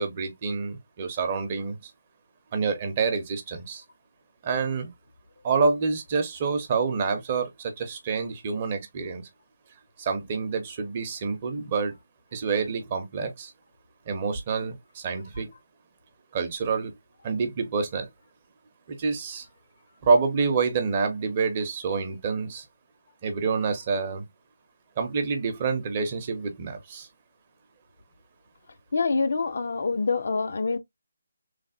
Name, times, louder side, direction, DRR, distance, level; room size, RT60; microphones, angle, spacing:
voice 1, 0.0-1.9 2.5-3.8 4.4-4.9 5.4-9.3 10.0-11.9 12.3-13.5 14.1-15.5 16.3-16.9 17.2-18.1 18.9-19.5 20.0-22.6 23.2-24.3 25.0-27.1, right 4 dB, 30° right, 0.6 m, -27 dB
voice 2, 28.9-30.8, left 4 dB, 60° left, 0.5 m, -26 dB
3.2 x 2.1 x 2.6 m
figure-of-eight pair, 165°, 0 cm